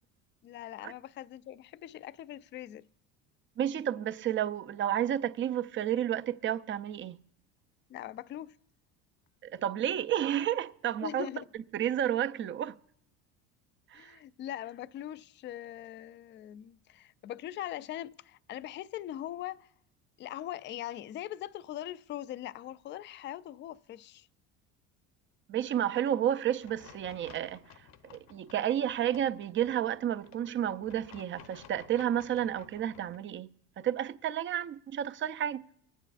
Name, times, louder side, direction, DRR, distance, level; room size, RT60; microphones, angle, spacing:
voice 1, 0.4-2.9 7.9-8.6 11.0-11.4 13.9-19.7 20.2-24.3, left 12 dB, 35° left, 0.4 m, -41 dB
voice 2, 3.6-7.2 9.4-11.3 11.7-12.8 13.9-14.2 25.5-27.6 28.1-35.6, right 10 dB, 35° right, 0.5 m, -31 dB
sound 1, 26.6-33.2, left 8 dB, 50° left, 0.8 m, -56 dB
23.0 x 9.2 x 2.4 m
hypercardioid pair, 75°, 35 cm